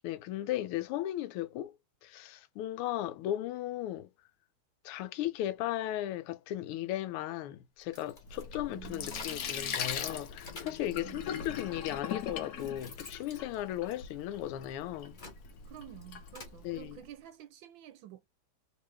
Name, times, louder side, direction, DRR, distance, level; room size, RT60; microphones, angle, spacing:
voice 1, 0.0-1.7 2.0-4.1 4.8-15.2 16.6-17.0, left 13 dB, 90° left, 1.5 m, -36 dB
sound 1, 7.8-9.7 10.0-10.9 11.7-11.8 12.3-14.4 14.9-16.6, left 3 dB, 35° left, 0.7 m, -51 dB
Sink (filling or washing), 8.2-17.0, left 8 dB, 70° left, 0.9 m, -41 dB
voice 2, 8.7-9.8 11.0-11.4 15.6-18.3, right 12 dB, 75° right, 1.2 m, -50 dB
3.3 x 2.8 x 3.1 m
omnidirectional pair, 2.4 m